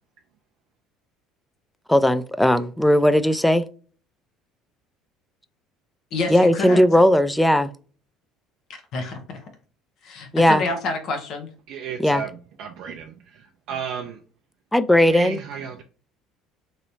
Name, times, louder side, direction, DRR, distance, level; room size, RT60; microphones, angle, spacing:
voice 1, 1.9-3.6 6.3-7.7 10.3-10.6 12.0-12.2 14.7-15.4, left 1 dB, 5° left, 0.4 m, -17 dB
voice 2, 6.1-6.8 8.9-9.5 10.0-11.5, left 3 dB, 60° left, 0.8 m, -28 dB
voice 3, 11.7-14.2 15.1-15.8, right 7 dB, 65° right, 0.4 m, -33 dB
3.1 x 2.9 x 2.7 m
hypercardioid pair, 65°, 0 cm